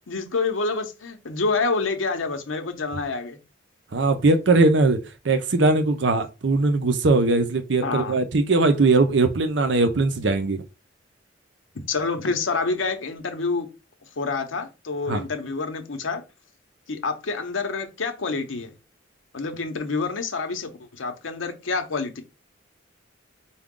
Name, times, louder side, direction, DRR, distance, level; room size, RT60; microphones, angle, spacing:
voice 1, 0.0-3.4 7.8-8.2 11.7-13.7 14.2-16.2 16.9-18.7 19.3-22.2, left 4 dB, 85° left, 0.8 m, -27 dB
voice 2, 3.9-5.0 5.2-10.6 15.1-15.2, right 3 dB, 65° right, 0.6 m, -20 dB
4.8 x 2.3 x 3.7 m
head